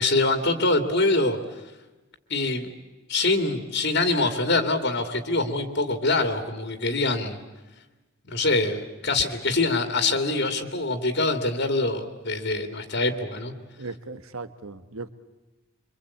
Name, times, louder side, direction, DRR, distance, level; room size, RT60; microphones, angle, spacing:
voice 1, 0.0-1.4 2.3-2.7 3.1-7.4 8.3-13.5, left 2 dB, 55° left, 8 dB, 2.5 m, -24 dB
voice 2, 13.8-15.1, right 3 dB, 80° right, 12 dB, 1.5 m, -37 dB
26.5 x 25.0 x 8.6 m, 1.2 s
head